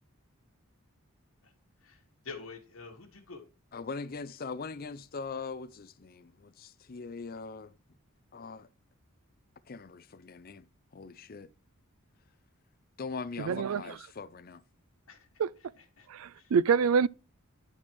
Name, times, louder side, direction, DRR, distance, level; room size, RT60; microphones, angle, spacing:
voice 1, 1.8-3.4 15.1-15.3 15.8-16.1 16.3-16.5, left 4 dB, 70° left, 1.6 m, -47 dB
voice 2, 3.7-7.7 8.3-8.7 9.7-10.7 10.9-11.5 13.0-14.6, left 4 dB, 45° left, 0.5 m, -41 dB
voice 3, 13.4-13.8 15.4-15.5 16.1-17.1, right 6 dB, 80° right, 0.4 m, -26 dB
10.5 x 4.3 x 4.6 m
head